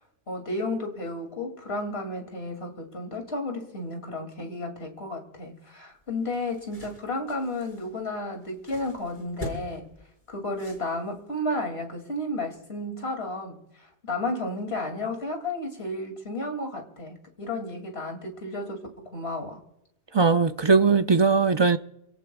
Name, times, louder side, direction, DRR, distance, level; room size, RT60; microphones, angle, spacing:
voice 1, 0.3-9.9 10.3-19.6, left 2 dB, 60° left, 2.8 m, -32 dB
sound 1, 5.9-11.3, equal, 45° left, 5.3 m, -44 dB
voice 2, 20.1-21.8, right 4 dB, 45° right, 0.3 m, -20 dB
28.5 x 17.5 x 2.3 m
omnidirectional pair, 1.2 m